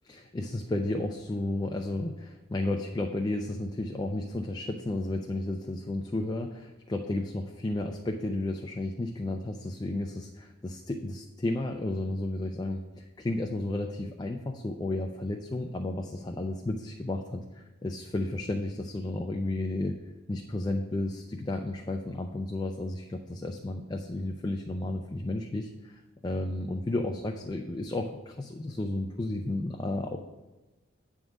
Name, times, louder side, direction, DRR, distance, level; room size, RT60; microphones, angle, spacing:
voice 1, 0.0-20.0 20.3-30.2, left 2 dB, 20° left, 3 dB, 0.4 m, -33 dB
9.0 x 3.7 x 6.2 m, 1.1 s
head